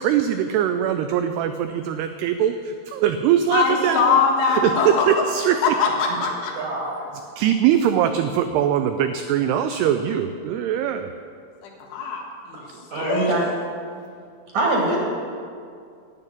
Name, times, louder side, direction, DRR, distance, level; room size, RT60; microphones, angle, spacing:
voice 1, 0.0-4.2 4.5-5.6 7.4-11.1, right 9 dB, 90° right, 8 dB, 2.3 m, -22 dB
voice 2, 3.5-5.1 5.6-6.5 11.6-12.6 12.9-13.5, left 5 dB, 85° left, 0 dB, 4.1 m, -22 dB
voice 3, 6.5-7.0 12.5-12.6 12.9-13.4 14.5-15.0, right 2 dB, 50° right, -2 dB, 2.4 m, -23 dB
11.0 x 8.2 x 10.0 m, 2.3 s
omnidirectional pair, 5.3 m